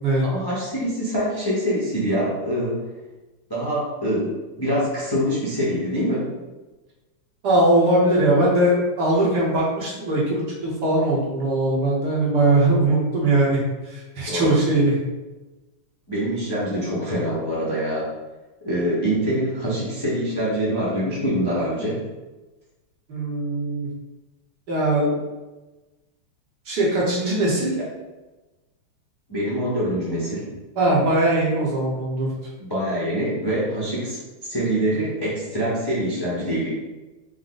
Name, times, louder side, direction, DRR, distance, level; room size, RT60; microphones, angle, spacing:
voice 1, 0.2-2.7 3.5-6.3 14.3-14.5 16.1-18.1 18.6-22.0 27.7-27.8 29.3-30.4 32.7-34.2 34.5-36.7, equal, 25° left, -8 dB, 0.5 m, -24 dB
voice 2, 7.4-15.0 23.1-23.9 24.7-25.2 26.7-27.8 30.8-32.3, right 1 dB, 60° right, -5 dB, 1.4 m, -20 dB
5.0 x 2.1 x 3.8 m, 1.1 s
omnidirectional pair, 2.3 m